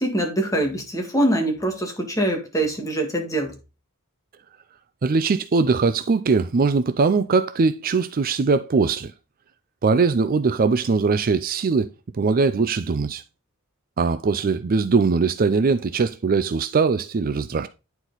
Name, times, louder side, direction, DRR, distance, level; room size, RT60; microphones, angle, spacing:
voice 1, 0.0-3.5, right 1 dB, 15° left, 1.8 m, -24 dB
voice 2, 5.0-9.1 9.8-11.9 12.1-13.2 14.0-17.7, right 4 dB, 40° right, 0.4 m, -21 dB
9.7 x 4.6 x 3.9 m
head